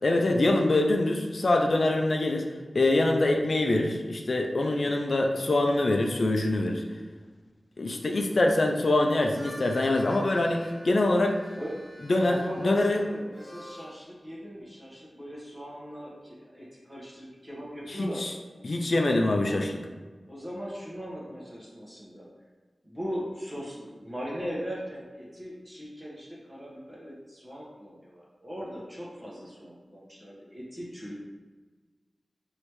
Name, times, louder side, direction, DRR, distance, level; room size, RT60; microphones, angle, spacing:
voice 1, 0.0-2.5 2.7-6.8 7.8-11.3 12.1-12.4 12.6-13.0 17.9-18.3 18.6-19.8, left 2 dB, 60° left, 2 dB, 0.4 m, -24 dB
Harmonica, 9.2-14.0, equal, 5° right, 0.9 m, -47 dB
voice 2, 11.5-18.5 19.4-19.6 20.3-22.3 22.8-31.3, equal, 25° right, -5 dB, 1.3 m, -39 dB
4.9 x 3.1 x 3.1 m, 1.3 s
wide cardioid pair, 85°, 0 cm